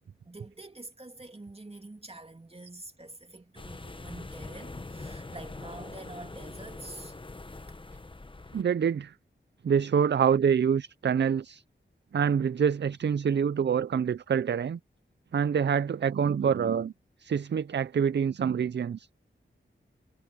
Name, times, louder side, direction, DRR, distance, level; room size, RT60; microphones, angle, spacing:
voice 1, 0.2-7.2 7.7-7.8, right 2 dB, 30° right, 2.6 m, -46 dB
sound 1, 3.6-8.6, left 2 dB, 25° left, 0.9 m, -43 dB
voice 2, 8.5-9.1 9.6-11.6 12.1-14.8 15.3-16.9 17.2-19.1, right 7 dB, 60° right, 0.4 m, -26 dB
wide cardioid pair, 85°, 21 cm